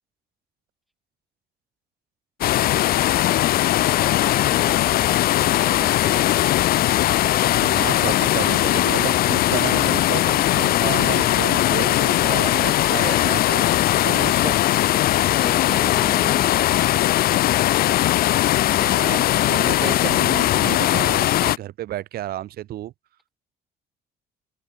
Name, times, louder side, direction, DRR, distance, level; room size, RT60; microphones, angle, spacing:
sound 1, 2.4-21.6, left 14 dB, 65° left, 0.6 m, -19 dB
voice 1, 2.8-6.3 15.2-17.0, equal, ahead, 7.6 m, -38 dB
voice 2, 7.4-14.6 18.6-22.9, right 13 dB, 65° right, 1.2 m, -32 dB
open air
cardioid pair, 110°, 17 cm